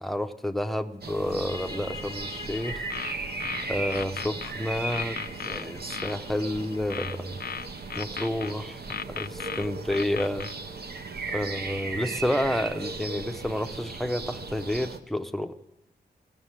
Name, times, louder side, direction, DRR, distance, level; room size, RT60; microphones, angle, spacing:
voice 1, 0.0-2.9 3.7-5.2 5.4-7.4 8.0-8.8 9.1-10.5 11.3-15.5, left 1 dB, ahead, 8 dB, 0.6 m, -30 dB
sound 1, 1.0-15.0, right 3 dB, 65° right, 0.7 m, -37 dB
sound 2, 1.5-12.8, left 4 dB, 20° right, 1.2 m, -47 dB
sound 3, 2.8-4.5 4.9-6.2 6.9-8.5 8.9-10.5, left 7 dB, 60° left, 0.5 m, -36 dB
16.5 x 6.5 x 9.7 m, 1.0 s
wide cardioid pair, 90°, 18 cm